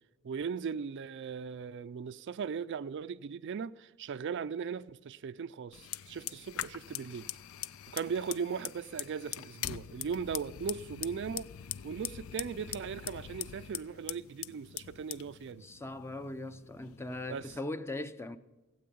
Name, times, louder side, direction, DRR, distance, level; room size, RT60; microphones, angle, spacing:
voice 1, 0.2-7.3 7.9-11.5 11.8-15.7 17.3-17.5, right 6 dB, 55° right, 0.4 m, -38 dB
Fire, 5.7-17.6, left 12 dB, 75° left, 0.4 m, -43 dB
voice 2, 15.6-18.4, left 2 dB, 10° left, 0.6 m, -39 dB
16.0 x 8.4 x 8.5 m
head